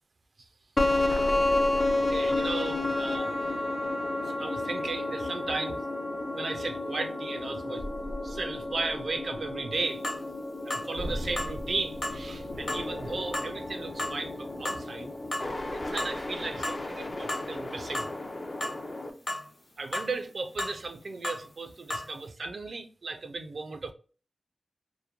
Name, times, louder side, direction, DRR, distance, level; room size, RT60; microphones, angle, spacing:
sound 1, 0.8-19.1, left 2 dB, 40° left, 0.4 m, -31 dB
voice 1, 2.1-3.6 4.2-5.8 6.3-7.9 8.2-10.0 10.6-15.1 15.7-18.1 19.8-23.9, right 3 dB, 75° right, 0.3 m, -36 dB
sound 2, 10.0-10.2 10.7-10.9 11.4-11.5 12.0-12.2 12.7-12.9 13.3-13.5 14.0-14.2 14.6-14.8 15.3-15.5 16.0-16.1 16.6-16.9 17.3-17.5 17.9-18.1 18.6-18.8 19.3-19.4 19.9-20.1 20.6-20.8 21.2-21.4 21.9-22.1, left 1 dB, 60° left, 1.0 m, -33 dB
3.0 x 2.0 x 2.3 m
wide cardioid pair, 80°, 0 cm